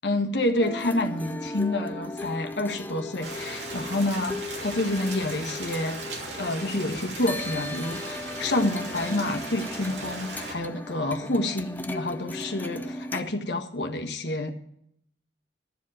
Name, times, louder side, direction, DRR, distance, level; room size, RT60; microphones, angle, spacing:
voice 1, 0.0-6.0 6.3-14.5, left 1 dB, 75° left, 5 dB, 1.5 m, -28 dB
sound 1, 0.6-13.2, left 2 dB, 10° left, 0.7 m, -37 dB
Rain, 3.2-10.5, right 2 dB, 70° right, 2.7 m, -38 dB
13.0 x 7.4 x 7.7 m, 0.71 s
head